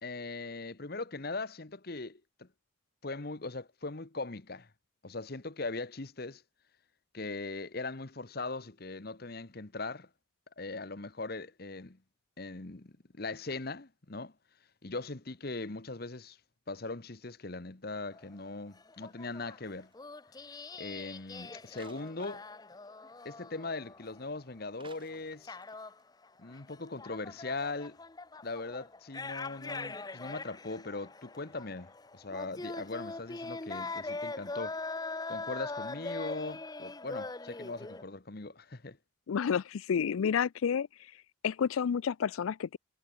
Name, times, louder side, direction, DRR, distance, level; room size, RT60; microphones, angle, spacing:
voice 1, 0.0-2.5 3.0-4.7 5.0-6.4 7.1-10.1 10.6-12.0 12.4-14.3 14.8-16.4 16.7-19.9 20.8-22.4 23.2-25.6 26.4-28.0 28.4-34.8 35.3-39.0, left 3 dB, 50° left, 1.1 m, -40 dB
sound 1, 18.1-18.5 18.7-24.5 24.9-38.0, left 3 dB, 20° left, 0.6 m, -42 dB
sound 2, 19.8-20.0 21.7-22.7 24.7-25.7 26.0-26.1, right 4 dB, 25° right, 3.4 m, -57 dB
voice 2, 39.3-40.9 41.4-42.8, left 7 dB, 85° left, 0.4 m, -30 dB
head